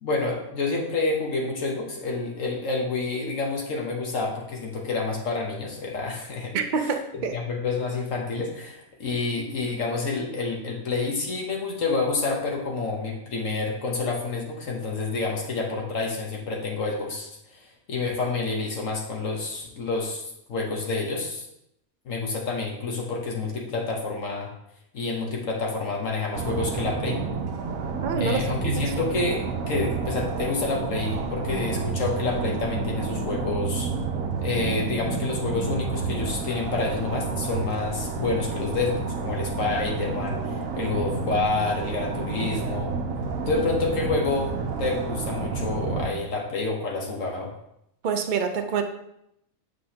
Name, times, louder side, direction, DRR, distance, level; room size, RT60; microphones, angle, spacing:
voice 1, 0.0-6.5 7.3-17.6 17.9-20.2 20.5-21.5 22.0-24.5 24.9-27.2 28.2-33.9 34.4-42.9 43.5-47.5, left 3 dB, 65° left, 0 dB, 1.4 m, -28 dB
voice 2, 6.5-7.4 28.0-28.4 28.8-28.9 40.8-41.0 43.5-43.7 48.0-48.8, right 6 dB, 50° right, 5 dB, 0.6 m, -27 dB
sound 1, 26.3-46.1, right 4 dB, 75° right, 1.2 m, -30 dB
7.6 x 5.5 x 2.8 m, 0.79 s
omnidirectional pair, 1.5 m